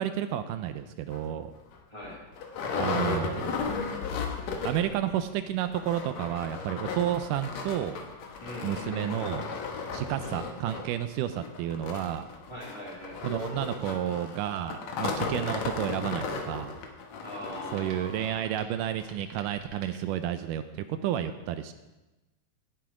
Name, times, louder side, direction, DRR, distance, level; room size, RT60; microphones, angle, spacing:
voice 1, 0.0-1.5 2.8-3.8 4.6-8.0 8.6-9.5 9.9-12.3 13.2-16.7 17.7-21.7, right 11 dB, 85° right, 9 dB, 2.1 m, -31 dB
sound 1, 1.1-1.2 1.7-1.8 2.0-5.0 5.3-5.4 5.6-18.4 19.0-19.1 19.5-19.6, left 5 dB, 65° left, 2.3 m, -35 dB
voice 2, 1.9-2.2 8.4-9.3 12.5-13.2 17.2-18.4, left 1 dB, 10° left, -5 dB, 3.6 m, -41 dB
sound 2, 17.7-20.7, right 4 dB, 55° right, 2.3 m, -54 dB
17.5 x 7.2 x 4.9 m, 1.1 s
omnidirectional pair, 3.8 m